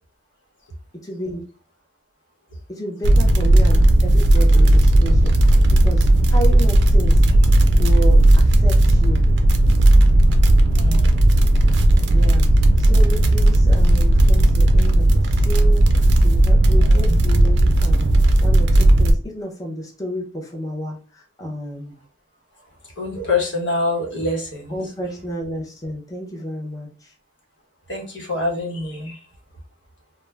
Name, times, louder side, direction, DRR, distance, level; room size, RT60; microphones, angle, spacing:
voice 1, 1.0-1.4 2.7-5.4 5.8-7.2 7.8-9.2 12.1-12.5 12.8-18.1 18.4-21.0 21.4-22.0 24.7-26.9, right 1 dB, 20° left, -2 dB, 0.5 m, -31 dB
sound 1, 3.0-19.1, right 1 dB, 65° right, 0.4 m, -14 dB
voice 2, 4.3-4.8 5.6-5.7 10.7-11.3 16.8-17.2 23.0-24.8 27.9-29.2, left 2 dB, 80° left, 0 dB, 0.9 m, -26 dB
2.3 x 2.1 x 3.1 m, 0.34 s
head